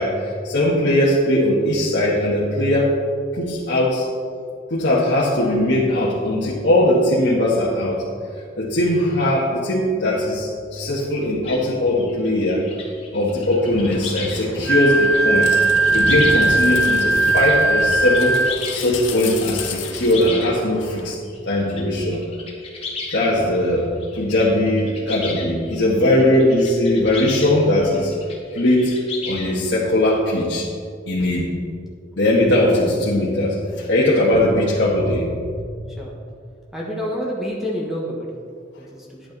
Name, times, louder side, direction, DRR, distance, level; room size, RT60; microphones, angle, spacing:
voice 1, 0.0-2.9 3.4-4.1 4.7-8.0 8.6-12.6 13.1-15.6 15.9-18.4 18.7-21.1 21.5-22.2 23.1-23.9 24.2-28.1 28.5-28.9 29.2-30.7 31.1-31.5 32.2-35.3, left 1 dB, 65° left, -7 dB, 1.5 m, -19 dB
sound 1, 11.4-14.4 14.7-27.5 27.8-29.8, left 4 dB, 30° left, 1.7 m, -35 dB
sound 2, 13.7-21.1, left 3 dB, 85° left, 0.9 m, -33 dB
Wind instrument woodwind instrument, 14.7-18.5, right 2 dB, 55° right, 0.6 m, -18 dB
voice 2, 36.7-38.3 38.9-39.2, equal, ahead, -3 dB, 1.2 m, -27 dB
11.0 x 8.6 x 4.0 m, 2.2 s
head